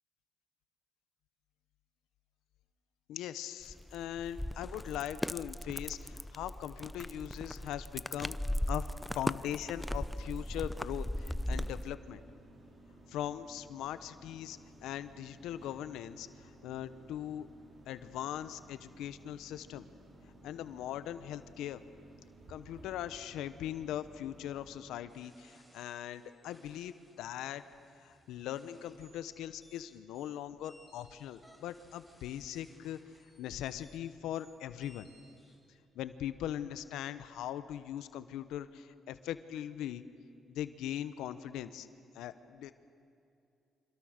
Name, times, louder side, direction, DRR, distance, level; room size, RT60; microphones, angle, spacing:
voice 1, 3.1-8.9 9.1-12.2 13.1-17.5 17.9-19.9 20.4-21.8 22.5-27.6 28.0-33.0 33.4-35.1 35.9-40.0 40.5-41.9 42.1-42.7, left 11 dB, 90° left, 12 dB, 1.0 m, -40 dB
sound 1, 3.6-12.0, left 1 dB, 5° left, 0.6 m, -38 dB
sound 2, 9.4-24.8, right 1 dB, 45° right, 5.4 m, -57 dB
sound 3, 25.1-35.6, equal, 15° right, 5.8 m, -64 dB
28.0 x 26.0 x 6.6 m, 2.6 s
cardioid pair, 90°, 0 cm